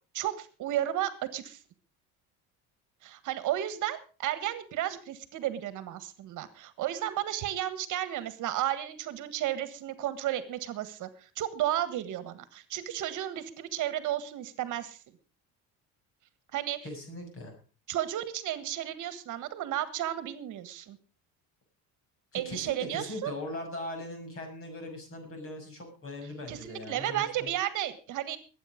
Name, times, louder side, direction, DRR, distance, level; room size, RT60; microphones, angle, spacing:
voice 1, 0.1-1.6 3.0-15.0 16.5-16.8 17.9-21.0 22.3-23.3 26.5-28.4, right 12 dB, 55° right, 13 dB, 1.6 m, -33 dB
voice 2, 16.8-17.6 22.3-27.5, left 1 dB, 35° left, 4 dB, 6.8 m, -40 dB
20.5 x 9.1 x 5.1 m, 0.37 s
cardioid pair, 160°, 36 cm